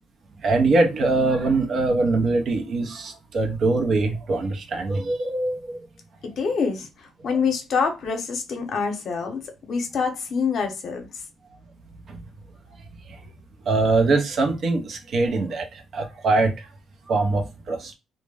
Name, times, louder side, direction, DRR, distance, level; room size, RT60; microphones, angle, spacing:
voice 1, 0.4-5.8 7.3-7.4 12.1-12.2 13.1-13.2 13.7-16.5 17.1-17.9, right 3 dB, 60° right, 0.6 m, -23 dB
voice 2, 6.2-6.9 7.2-11.1, left 5 dB, 65° left, 0.7 m, -26 dB
2.1 x 2.1 x 3.3 m
cardioid pair, 90°, 0 cm